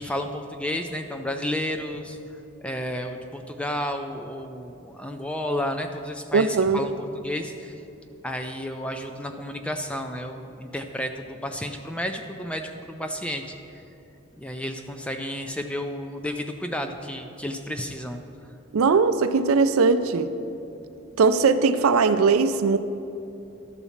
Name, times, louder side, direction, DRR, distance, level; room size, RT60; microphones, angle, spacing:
voice 1, 0.0-2.2 2.6-7.7 8.2-13.6 14.4-18.2 21.1-21.2, left 1 dB, 5° left, 5 dB, 0.4 m, -32 dB
voice 2, 6.3-6.9 18.7-20.3 21.2-22.8, right 4 dB, 80° right, 10 dB, 0.4 m, -20 dB
12.0 x 4.1 x 7.1 m, 2.8 s
head